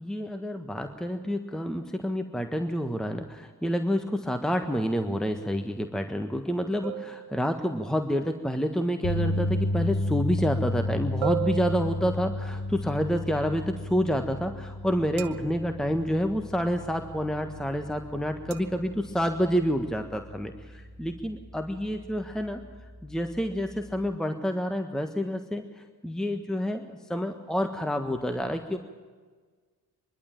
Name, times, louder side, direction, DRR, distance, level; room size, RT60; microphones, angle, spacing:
voice 1, 0.0-22.6 23.0-28.8, equal, ahead, 6 dB, 1.5 m, -28 dB
sound 1, 6.8-7.9 11.2-12.6 15.2-15.9 18.5-18.8, right 13 dB, 85° right, 0.8 m, -37 dB
sound 2, 9.0-21.3 21.6-21.9 24.1-24.2, left 1 dB, 85° left, 3.2 m, -33 dB
24.0 x 12.0 x 9.1 m, 1.5 s
hypercardioid pair, 45°, 44 cm